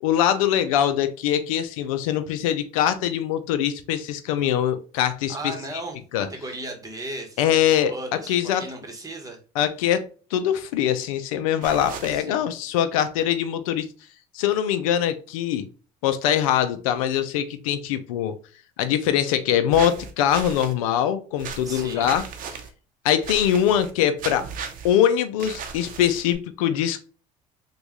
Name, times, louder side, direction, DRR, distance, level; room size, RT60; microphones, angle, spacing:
voice 1, 0.0-5.5 6.1-6.3 7.4-7.9 8.3-8.6 9.6-13.9 14.3-15.7 16.0-18.4 18.8-22.2 23.0-24.5 24.8-27.0, left 10 dB, 85° left, 11 dB, 0.4 m, -23 dB
voice 2, 5.3-6.0 6.3-9.4 11.8-12.5 21.6-22.2, right 2 dB, 20° right, 3 dB, 1.2 m, -36 dB
sound 1, 11.6-12.2 19.7-20.7 21.4-22.7 23.2-23.9 24.2-24.9 25.4-26.4, right 6 dB, 55° right, 0.7 m, -36 dB
3.5 x 2.3 x 3.0 m, 0.37 s
supercardioid pair, 75°, 17 cm